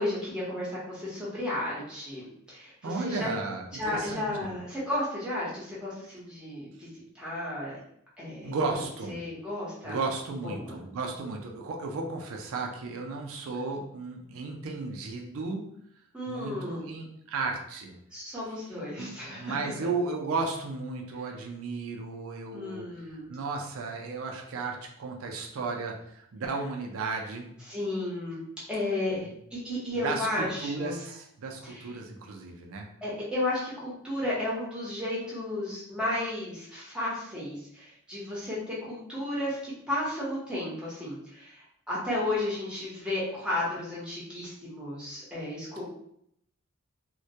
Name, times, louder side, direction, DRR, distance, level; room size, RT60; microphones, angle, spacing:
voice 1, 0.0-3.4 3.7-6.9 7.1-7.7 8.2-8.6 9.1-10.0 10.4-10.8 16.1-16.8 18.1-19.5 22.5-23.3 27.7-28.4 28.7-31.0 31.6-31.9 33.0-45.8, left 1 dB, 5° right, -8 dB, 0.8 m, -33 dB
voice 2, 2.8-4.5 8.4-9.2 9.8-15.6 16.3-17.9 19.0-22.8 23.3-27.5 29.3-29.4 30.0-32.9, right 3 dB, 65° right, 2 dB, 0.4 m, -34 dB
2.2 x 2.1 x 2.7 m, 0.71 s
head